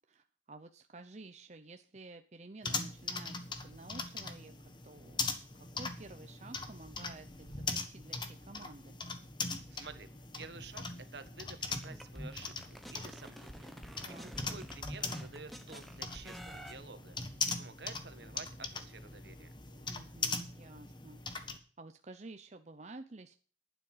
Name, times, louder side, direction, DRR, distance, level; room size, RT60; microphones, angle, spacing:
voice 1, 0.0-5.3 5.6-9.0 14.0-14.3 19.9-23.4, right 2 dB, 40° right, 7 dB, 0.7 m, -52 dB
sound 1, 2.6-21.6, left 4 dB, 25° left, 1.4 m, -41 dB
voice 2, 9.7-10.1 10.4-10.8 11.1-19.5, right 4 dB, 70° right, 10 dB, 1.6 m, -51 dB
sound 2, 11.7-16.7, equal, ahead, 1.2 m, -47 dB
11.5 x 9.4 x 5.6 m, 0.41 s
head